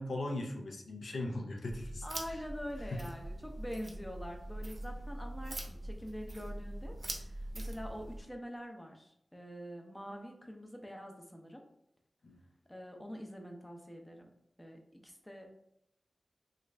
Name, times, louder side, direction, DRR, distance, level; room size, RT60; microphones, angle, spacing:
voice 1, 0.0-2.1 12.2-12.4, left 1 dB, 90° left, 1 dB, 0.5 m, -38 dB
sound 1, 1.7-8.2, right 1 dB, 55° right, 0.6 m, -43 dB
voice 2, 2.0-11.6 12.7-14.3 14.6-15.5, equal, 10° left, 2 dB, 0.6 m, -45 dB
3.2 x 2.4 x 3.2 m, 0.77 s
wide cardioid pair, 90°, 0 cm